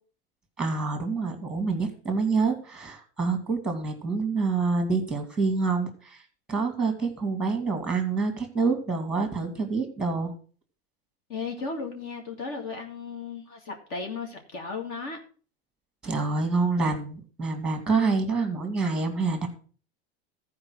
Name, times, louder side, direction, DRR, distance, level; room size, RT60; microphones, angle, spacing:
voice 1, 0.6-6.2 6.5-10.3 16.0-19.5, right 4 dB, ahead, 2.3 m, -27 dB
voice 2, 11.3-15.2, left 4 dB, 45° left, 2.1 m, -35 dB
14.0 x 4.9 x 6.1 m
supercardioid pair, 145°, 31 cm